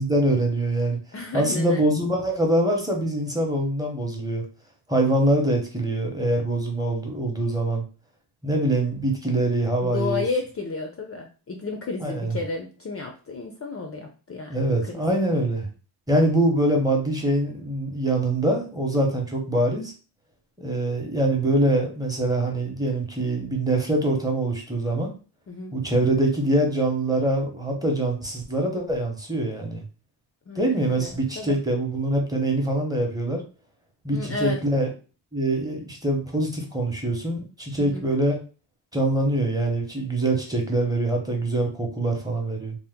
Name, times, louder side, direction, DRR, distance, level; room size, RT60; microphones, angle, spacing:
voice 1, 0.0-1.0 1.3-4.4 4.9-7.8 8.4-10.2 12.0-12.3 14.5-15.7 16.1-19.9 20.6-25.1 25.7-29.8 30.6-33.4 34.0-34.9 35.3-38.4 38.9-42.7, right 1 dB, 10° right, 1 dB, 0.8 m, -24 dB
voice 2, 1.1-1.8 9.8-15.1 25.5-25.7 30.5-31.6 34.1-34.6 37.8-38.1, left 3 dB, 35° left, 3 dB, 0.4 m, -32 dB
2.8 x 2.1 x 3.4 m, 0.35 s
wide cardioid pair, 110°, 43 cm